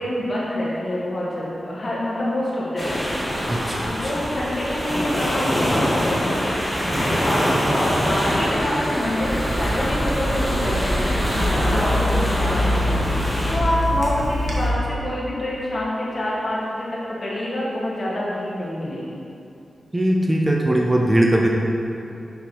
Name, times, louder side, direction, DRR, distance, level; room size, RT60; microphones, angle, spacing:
voice 1, 0.0-3.1 3.8-6.3 7.0-7.2 7.7-11.1 11.6-19.2, left 1 dB, 45° left, -6 dB, 1.5 m, -27 dB
sound 1, 2.8-13.6, equal, ahead, 1.3 m, -24 dB
voice 2, 3.5-3.9 19.9-21.5, right 1 dB, 15° right, -1 dB, 0.5 m, -19 dB
Water tap faucet / Sink (filling or washing), 9.2-14.7, left 1 dB, 65° right, 1.0 m, -24 dB
6.2 x 5.9 x 2.9 m, 2.7 s
wide cardioid pair, 110°, 0 cm